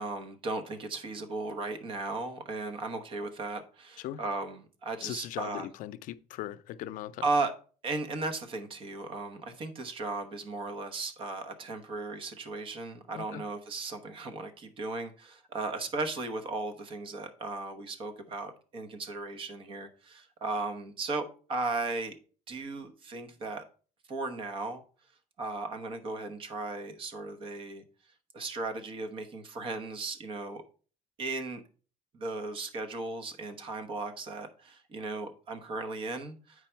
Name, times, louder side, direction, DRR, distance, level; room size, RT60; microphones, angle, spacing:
voice 1, 0.0-5.7 7.2-7.5 7.8-22.2 22.5-23.6 24.1-24.8 25.4-27.8 28.3-30.6 31.2-31.6 32.1-36.7, right 3 dB, 40° right, 1.0 m, -36 dB
voice 2, 5.0-7.3 13.1-13.4, left 13 dB, 90° left, 0.5 m, -39 dB
8.3 x 4.9 x 4.4 m
cardioid pair, 180°, 13 cm